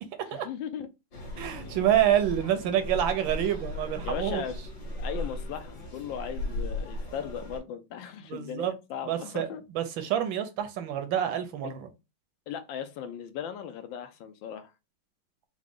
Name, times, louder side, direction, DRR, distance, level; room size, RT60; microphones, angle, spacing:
voice 1, 0.3-0.9 4.0-4.6 5.0-9.6 11.6-11.7 12.5-14.7, left 8 dB, 75° left, 1.2 m, -37 dB
sound 1, 1.1-7.6, left 1 dB, 50° left, 2.1 m, -37 dB
voice 2, 1.4-4.4 8.2-8.7 9.0-11.9, right 10 dB, 75° right, 1.3 m, -27 dB
4.8 x 2.1 x 3.6 m
omnidirectional pair, 2.2 m